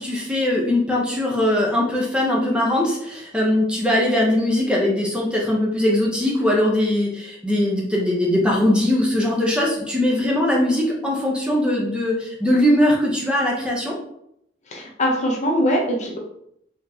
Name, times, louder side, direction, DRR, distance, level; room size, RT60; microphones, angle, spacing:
voice 1, 0.0-13.9, left 1 dB, 5° right, -3 dB, 0.7 m, -20 dB
voice 2, 14.7-16.2, equal, 40° left, -1 dB, 0.8 m, -22 dB
4.3 x 3.0 x 2.7 m, 0.73 s
head